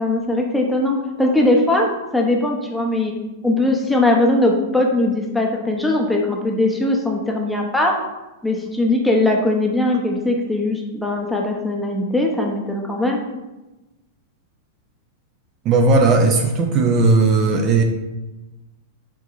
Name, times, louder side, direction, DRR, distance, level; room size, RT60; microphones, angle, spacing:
voice 1, 0.0-3.1 3.4-8.0 8.4-13.3, left 2 dB, 5° left, 0 dB, 0.7 m, -20 dB
voice 2, 15.7-17.8, right 3 dB, 35° right, 3 dB, 0.4 m, -16 dB
4.6 x 3.8 x 2.5 m, 1.1 s
hypercardioid pair, 130°, 0 cm